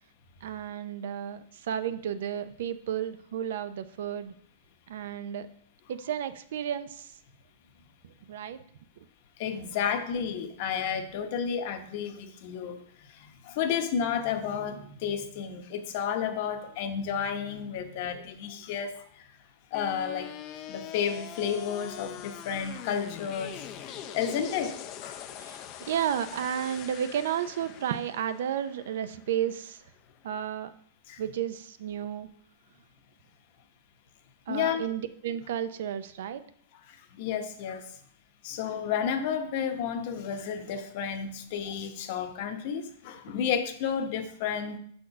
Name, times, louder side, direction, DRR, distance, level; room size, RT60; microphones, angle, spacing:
voice 1, 0.4-4.3 4.9-5.5 5.9-7.2 8.0-8.6 18.1-18.2 24.1-24.2 25.4-29.8 30.2-30.7 31.2-32.3 34.5-36.4, right 9 dB, 70° right, 12 dB, 0.5 m, -32 dB
voice 2, 9.4-12.8 13.1-19.0 19.7-20.3 20.7-24.8 25.0-25.2 31.1-31.2 34.5-34.9 37.2-37.8 38.4-44.8, left 7 dB, 50° left, 7 dB, 0.9 m, -31 dB
sound 1, 19.7-29.8, left 9 dB, 35° left, 0.5 m, -43 dB
6.2 x 4.3 x 5.7 m, 0.63 s
supercardioid pair, 150°, 0 cm